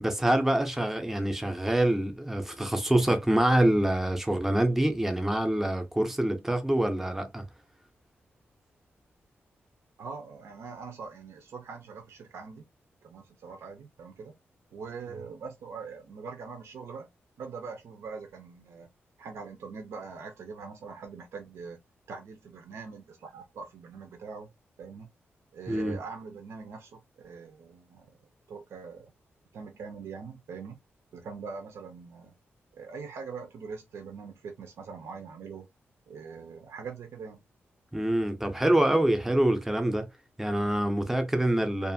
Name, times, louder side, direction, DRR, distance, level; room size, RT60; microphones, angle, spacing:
voice 1, 0.0-7.4 25.7-26.0 37.9-40.1 40.4-41.9, right 1 dB, 5° right, 0.5 m, -25 dB
voice 2, 10.0-12.7 13.0-14.3 14.7-17.1 17.4-18.9 19.2-21.8 22.1-24.5 24.8-25.1 25.5-28.1 28.5-29.1 29.5-30.8 31.1-32.3 32.7-35.6 36.1-37.4, right 5 dB, 75° right, 0.5 m, -42 dB
2.5 x 2.4 x 2.6 m
wide cardioid pair, 150°, 5 cm